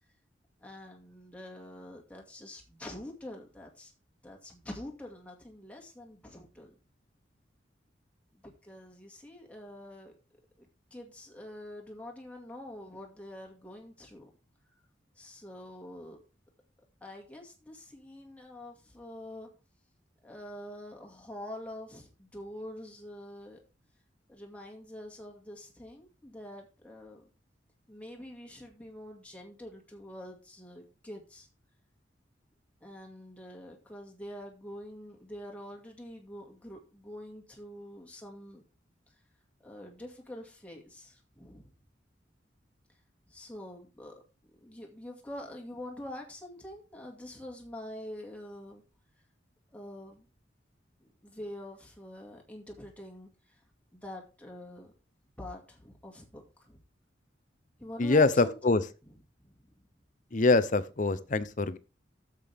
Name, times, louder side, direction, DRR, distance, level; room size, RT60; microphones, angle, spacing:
voice 1, 0.6-3.9 4.2-6.7 8.4-10.1 10.6-10.7 10.9-14.3 15.2-16.2 17.0-19.5 20.2-23.6 24.3-27.3 27.9-31.5 32.8-38.6 39.6-41.7 43.3-44.1 44.6-48.8 49.7-50.3 51.2-53.3 53.9-54.9 55.4-56.8 57.8-58.8 59.4-59.5, left 1 dB, 5° left, 2.2 m, -45 dB
voice 2, 58.0-58.8 60.3-61.8, left 3 dB, 45° left, 0.7 m, -24 dB
12.0 x 7.6 x 3.5 m
head